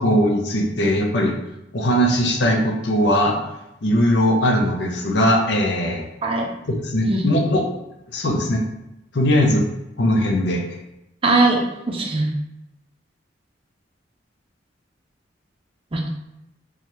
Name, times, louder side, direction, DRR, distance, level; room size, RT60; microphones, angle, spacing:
voice 1, 0.0-1.4 1.7-3.4 3.8-6.1 6.6-7.6 8.1-8.6 9.1-9.7 10.0-10.6, equal, 65° left, 2 dB, 0.6 m, -19 dB
voice 2, 11.2-11.6 11.9-12.3 15.9-16.1, right 2 dB, 30° right, 1 dB, 0.5 m, -19 dB
3.1 x 2.3 x 4.3 m, 0.88 s
head